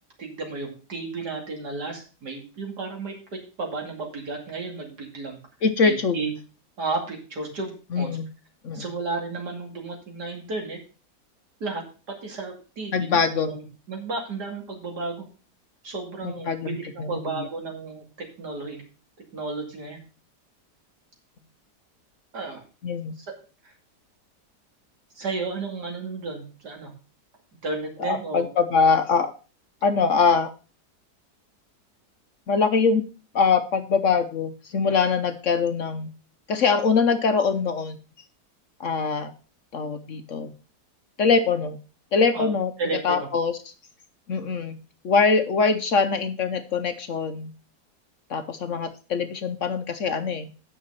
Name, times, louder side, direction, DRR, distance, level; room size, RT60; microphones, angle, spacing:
voice 1, 0.2-5.4 5.8-6.3 6.8-8.1 8.7-10.8 11.6-15.3 15.8-18.0 18.4-18.8 19.3-20.0 22.3-22.6 23.2-23.3 23.6-23.7 25.1-26.9 27.6-28.5 42.3-42.5 42.8-43.3, right 3 dB, 75° right, 1 dB, 3.0 m, -33 dB
voice 2, 5.6-6.4 7.9-8.3 8.6-8.9 12.9-13.6 16.2-17.5 22.8-23.2 28.0-29.3 29.8-30.5 32.5-33.0 33.3-36.1 36.5-38.0 38.8-39.3 39.7-40.5 41.2-41.8 42.1-42.7 43.0-43.6 44.3-44.8 45.0-47.5 48.3-50.5, left 5 dB, 60° left, 9 dB, 1.0 m, -23 dB
9.2 x 6.0 x 5.6 m, 0.35 s
omnidirectional pair, 1.8 m